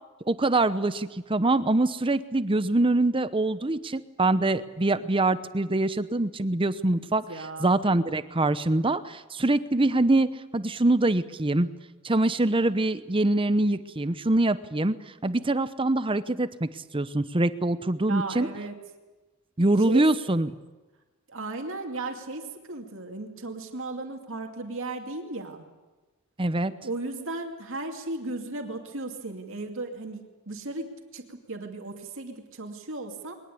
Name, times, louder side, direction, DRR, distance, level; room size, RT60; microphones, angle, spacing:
voice 1, 0.3-7.2 7.6-11.7 12.0-15.0 15.2-18.5 19.6-20.5 26.4-26.7, right 2 dB, 25° right, 13 dB, 0.8 m, -24 dB
voice 2, 7.3-7.7 18.1-18.8 19.9-20.0 21.3-25.6 26.8-33.3, right 2 dB, 60° right, 3 dB, 2.5 m, -35 dB
21.5 x 19.5 x 8.6 m, 1.2 s
head